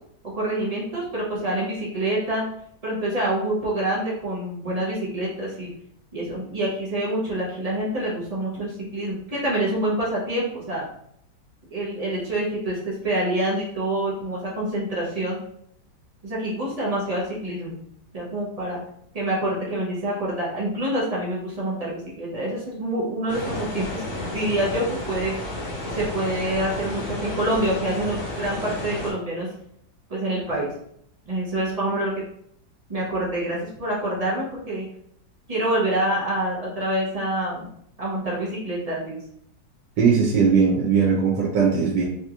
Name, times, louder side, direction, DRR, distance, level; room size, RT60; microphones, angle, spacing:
voice 1, 0.3-2.4 2.8-5.7 6.1-10.9 11.7-15.4 16.2-17.8 18.1-18.8 19.1-25.3 25.8-29.5 30.1-30.7 31.3-32.1 32.9-34.9 35.5-37.7 38.0-39.2, right 1 dB, 55° right, -6 dB, 0.4 m, -26 dB
sound 1, 23.3-29.1, left 1 dB, 75° left, 1.7 m, -32 dB
voice 2, 40.0-42.0, right 5 dB, 85° right, -4 dB, 1.4 m, -19 dB
3.7 x 2.9 x 2.4 m, 0.72 s
omnidirectional pair, 1.9 m